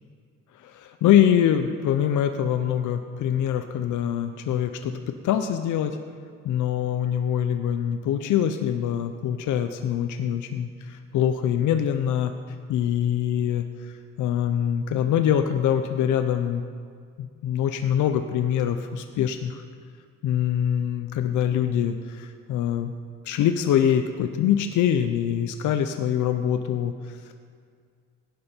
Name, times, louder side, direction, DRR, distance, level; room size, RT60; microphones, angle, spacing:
voice 1, 0.5-6.0 6.4-12.3 12.7-16.6 17.2-19.6 20.2-22.9 23.2-27.4, left 9 dB, 80° left, 8 dB, 0.7 m, -24 dB
17.0 x 10.5 x 4.5 m, 2.1 s
cardioid pair, 90°, 30 cm